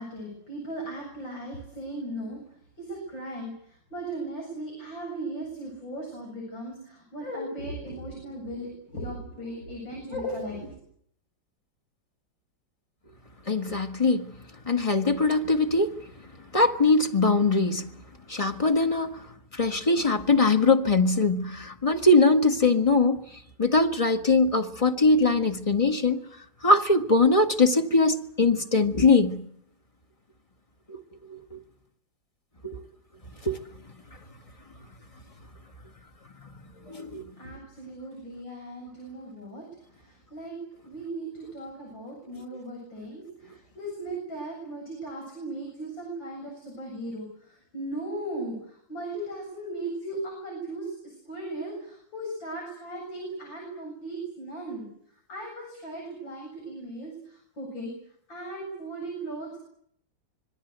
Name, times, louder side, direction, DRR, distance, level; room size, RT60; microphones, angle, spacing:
voice 1, 0.0-10.8 37.4-58.0 58.3-59.6, right 1 dB, 75° left, 8.7 m, -37 dB
voice 2, 13.5-14.3 14.6-16.0 16.5-17.9 18.3-19.2 19.5-23.2 23.6-26.2 26.6-29.4 30.9-31.0 31.3-31.6 32.6-32.8 33.4-33.6 36.9-37.2, left 3 dB, 20° left, 1.6 m, -22 dB
26.0 x 23.0 x 8.2 m
omnidirectional pair, 2.1 m